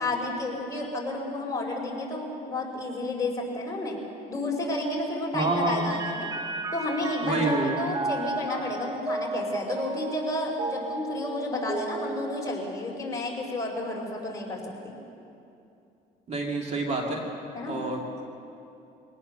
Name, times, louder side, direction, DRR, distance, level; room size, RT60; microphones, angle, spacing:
voice 1, 0.0-4.0 4.3-6.3 6.7-14.9 17.5-17.8, left 2 dB, 20° left, -1 dB, 5.1 m, -31 dB
voice 2, 5.3-5.8 7.2-7.8 16.3-17.2 17.7-18.2, right 2 dB, 40° right, 1 dB, 2.6 m, -27 dB
Mallet percussion, 5.4-13.1, right 2 dB, 20° right, 1.2 m, -34 dB
23.5 x 18.0 x 6.8 m, 2.7 s
cardioid pair, 110°, 17 cm